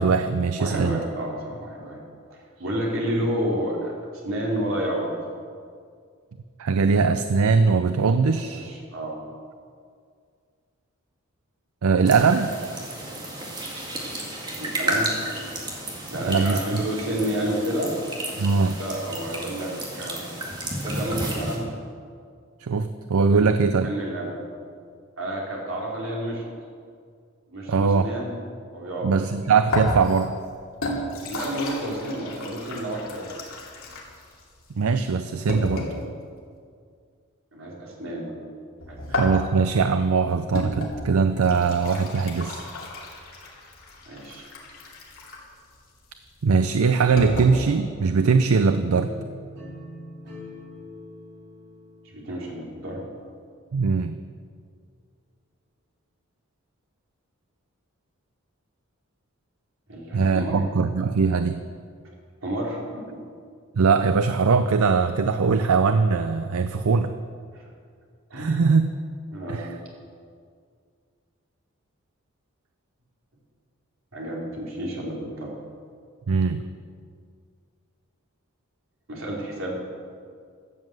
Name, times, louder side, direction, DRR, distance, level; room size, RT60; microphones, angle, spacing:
voice 1, 0.0-1.0 6.6-8.7 11.8-12.5 16.3-16.8 18.4-18.8 22.6-23.9 27.7-28.1 29.0-30.3 34.8-35.9 39.1-42.6 46.4-49.1 53.7-54.1 60.1-61.6 63.8-67.1 68.3-68.8 69.5-69.7 76.3-76.6, right 5 dB, 85° right, 9 dB, 0.5 m, -21 dB
voice 2, 0.6-2.0 2.6-3.9 4.2-5.1 8.3-9.2 14.6-15.2 16.1-18.0 18.8-20.3 20.8-21.7 23.3-23.6 23.8-24.4 25.2-26.4 27.5-28.3 28.7-29.1 31.1-33.3 37.5-38.3 38.9-39.0 44.1-44.5 52.1-53.0 59.9-60.6 62.4-63.0 67.5-67.6 68.3-68.6 69.3-69.8 74.1-75.5 79.1-79.7, right 1 dB, 70° right, -3 dB, 3.1 m, -30 dB
sound 1, 12.1-21.6, right 1 dB, 20° right, 1.9 m, -32 dB
sound 2, 29.7-36.1 38.8-47.6, left 2 dB, 80° left, 2.7 m, -33 dB
sound 3, 48.3-53.2, left 1 dB, 55° right, 4.2 m, -43 dB
12.5 x 7.5 x 7.8 m, 2.1 s
head